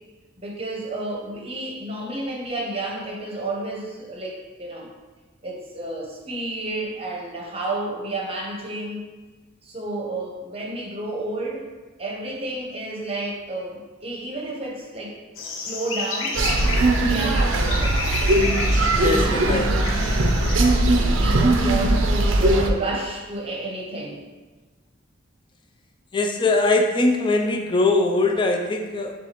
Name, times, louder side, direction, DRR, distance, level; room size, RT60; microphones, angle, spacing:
voice 1, 0.4-4.9 5.4-9.0 9.6-11.6 12.0-15.2 15.6-16.4 17.0-18.0 18.9-19.9 20.9-24.2 28.1-28.2, right 2 dB, 30° right, -3 dB, 0.8 m, -31 dB
sound 1, 15.4-20.8, left 3 dB, 85° left, 0.6 m, -31 dB
sound 2, 16.3-22.7, right 2 dB, 75° right, 0.5 m, -19 dB
voice 2, 18.9-19.7 26.1-29.1, left 2 dB, 25° left, 3 dB, 0.3 m, -21 dB
6.9 x 2.3 x 2.9 m, 1.3 s
head